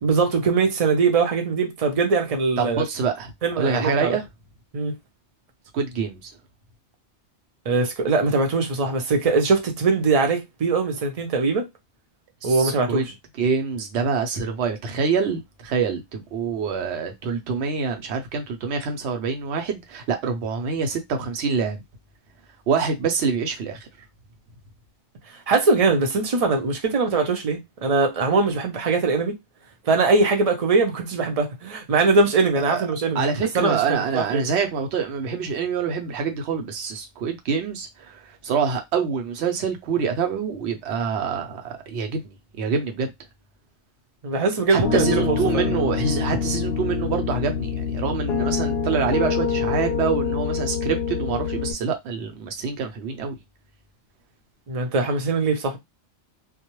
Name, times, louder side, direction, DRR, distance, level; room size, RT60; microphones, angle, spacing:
voice 1, 0.0-2.8 3.4-4.2 4.7-5.0 7.7-11.7 12.4-13.0 25.5-29.4 29.8-33.2 33.5-34.4 44.2-45.7 54.7-55.8, right 4 dB, 40° right, 0.6 m, -21 dB
voice 2, 2.6-4.2 5.7-6.3 12.4-13.1 13.4-21.8 22.7-23.9 32.6-32.9 33.1-42.2 42.6-43.1 44.7-53.4, right 5 dB, 70° right, 0.9 m, -26 dB
Piano, 44.8-51.7, left 6 dB, 65° left, 0.7 m, -25 dB
2.3 x 2.0 x 3.0 m
omnidirectional pair, 1.2 m